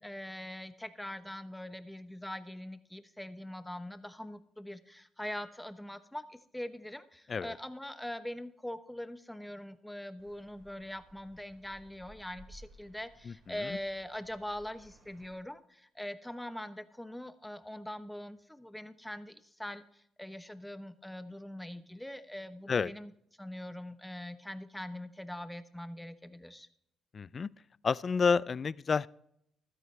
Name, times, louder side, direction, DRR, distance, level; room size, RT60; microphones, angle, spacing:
voice 1, 0.0-23.1 23.4-26.7, left 1 dB, 5° left, 10 dB, 1.0 m, -42 dB
sound 1, 10.2-15.3, right 1 dB, 60° right, 5.7 m, -58 dB
voice 2, 27.1-27.5 27.8-29.1, left 5 dB, 40° left, 21 dB, 0.4 m, -29 dB
14.5 x 12.5 x 3.3 m, 0.73 s
cardioid pair, 90°, 0 cm